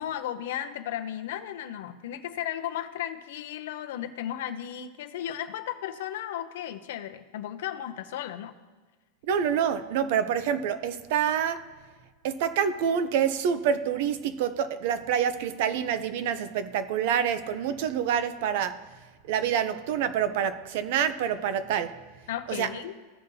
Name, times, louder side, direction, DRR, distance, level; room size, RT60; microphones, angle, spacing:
voice 1, 0.0-8.5 22.3-22.9, left 11 dB, 65° left, 0.6 m, -35 dB
voice 2, 9.3-11.7 12.2-18.8 19.3-22.0 22.5-22.7, right 8 dB, 50° right, 0.5 m, -27 dB
15.5 x 5.4 x 2.7 m
supercardioid pair, 180°, 0 cm